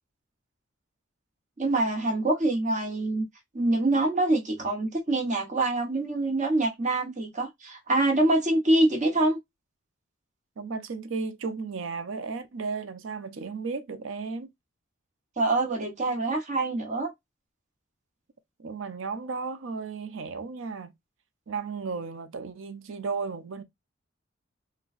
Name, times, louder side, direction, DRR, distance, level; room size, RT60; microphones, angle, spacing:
voice 1, 1.6-3.2 3.5-9.4 15.4-17.1, right 2 dB, 40° right, 1.0 m, -25 dB
voice 2, 10.6-14.5 18.6-20.9 21.5-23.6, right 4 dB, 75° right, 0.5 m, -34 dB
3.8 x 2.2 x 2.4 m
head